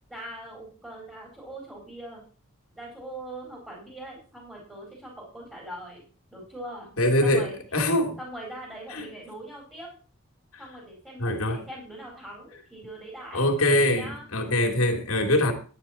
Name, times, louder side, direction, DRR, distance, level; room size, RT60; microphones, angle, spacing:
voice 1, 0.1-2.2 2.8-6.0 6.3-6.9 7.2-7.6 8.2-9.9 10.6-13.5 13.9-14.2, right 1 dB, 5° right, 4.4 m, -41 dB
voice 2, 7.0-8.2 8.9-9.1 10.5-10.7 11.2-11.6 13.3-15.5, left 1 dB, 80° left, 2.9 m, -23 dB
12.0 x 9.8 x 4.4 m
head